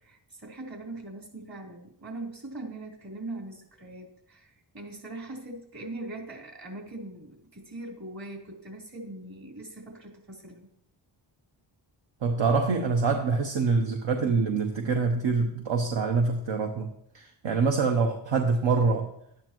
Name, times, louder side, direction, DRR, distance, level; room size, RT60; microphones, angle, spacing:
voice 1, 0.0-10.7 13.1-13.3, right 2 dB, 45° right, -2 dB, 3.6 m, -41 dB
voice 2, 12.2-16.9 17.1-19.1, right 4 dB, 70° right, 3 dB, 1.1 m, -25 dB
12.0 x 9.7 x 3.0 m, 0.75 s
cardioid pair, 55°, 48 cm